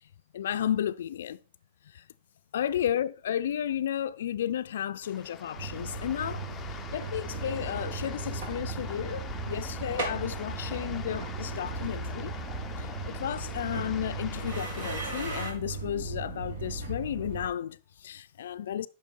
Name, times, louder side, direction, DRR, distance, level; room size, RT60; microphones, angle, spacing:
voice 1, 0.3-1.4 1.9-2.0 2.5-6.4 6.9-12.3 12.8-18.9, left 10 dB, 85° left, 0.3 m, -33 dB
sound 1, 5.0-15.5, left 6 dB, 15° left, 0.5 m, -44 dB
sound 2, 5.6-17.5, right 3 dB, 70° right, 2.3 m, -37 dB
sound 3, 7.2-14.2, right 3 dB, 10° right, 0.9 m, -43 dB
9.0 x 5.8 x 4.4 m
supercardioid pair, 160°, 0 cm